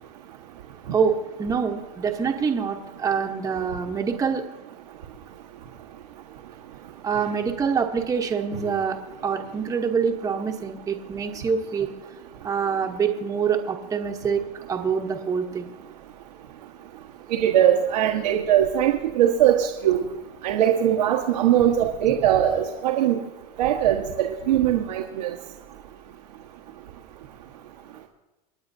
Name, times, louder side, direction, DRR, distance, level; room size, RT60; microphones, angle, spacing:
voice 1, 0.9-4.4 7.0-9.0 9.2-11.9 12.4-15.7, right 6 dB, 15° right, 3 dB, 1.0 m, -25 dB
voice 2, 17.3-20.0 20.4-23.2 23.6-25.3, right 10 dB, 85° right, 1 dB, 1.3 m, -21 dB
28.0 x 9.5 x 2.7 m, 1.1 s
supercardioid pair, 130°, 21 cm